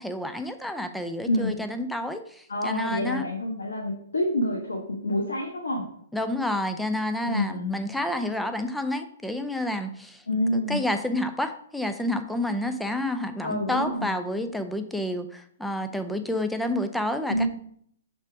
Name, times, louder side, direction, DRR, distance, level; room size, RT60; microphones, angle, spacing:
voice 1, 0.0-2.2 2.6-3.2 6.1-10.2 10.5-17.5, left 1 dB, ahead, 8 dB, 0.5 m, -29 dB
voice 2, 1.3-1.6 2.5-5.8 7.2-7.8 10.3-10.8 13.4-14.1 17.3-17.5, left 1 dB, 85° left, -4 dB, 1.2 m, -27 dB
5.6 x 3.5 x 4.7 m, 0.66 s
hypercardioid pair, 130°, 0 cm